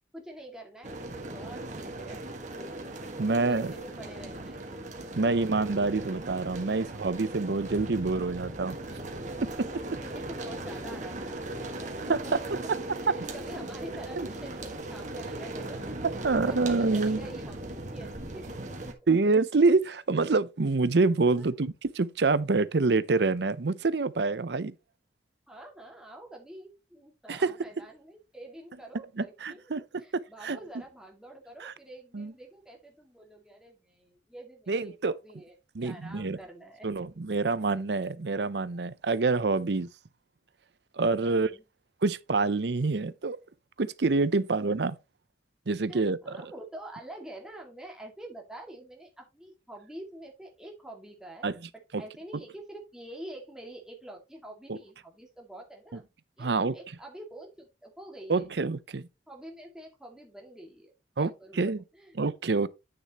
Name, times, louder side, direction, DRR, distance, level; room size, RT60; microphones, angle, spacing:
voice 1, 0.1-2.8 3.2-4.7 10.0-11.8 12.2-12.5 13.0-15.8 16.5-19.4 21.4-21.5 25.5-29.7 30.0-37.1 41.2-41.6 45.9-51.6 52.0-56.0 56.4-58.5 59.3-61.7 61.9-62.2, right 1 dB, 5° right, 2.1 m, -47 dB
sound 1, 0.8-18.9, right 2 dB, 45° right, 1.6 m, -38 dB
voice 2, 3.2-3.7 5.2-8.8 9.4-10.0 12.1-12.8 14.2-14.3 16.0-17.2 19.1-24.7 27.3-27.5 29.2-29.8 30.1-30.6 31.6-31.7 32.1-32.3 34.7-35.1 35.7-36.4 36.8-39.9 40.9-41.5 42.0-43.4 43.8-45.0 45.7-46.4 51.4-51.5 51.9-52.0 54.7-54.8 56.4-56.7 58.3-59.1 61.2-61.3 61.6-61.8 62.1-62.7, right 3 dB, 70° right, 0.6 m, -26 dB
8.9 x 6.7 x 3.0 m
head